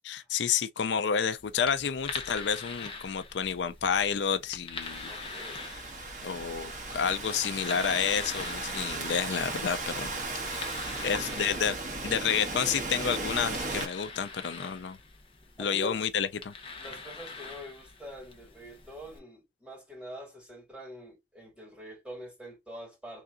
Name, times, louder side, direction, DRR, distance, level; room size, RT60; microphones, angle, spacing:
voice 1, 0.1-5.1 6.2-10.1 11.0-11.8 12.0-15.0 15.6-16.5, left 7 dB, 90° left, 0.5 m, -30 dB
sound 1, 1.4-19.2, left 4 dB, 30° left, 0.8 m, -44 dB
Thunderstorm / Rain, 4.8-13.8, right 2 dB, 45° right, 1.2 m, -36 dB
voice 2, 5.0-5.7 10.9-11.7 13.5-13.7 15.6-16.0 16.8-23.2, equal, 5° right, 3.1 m, -45 dB
3.8 x 3.4 x 2.5 m
head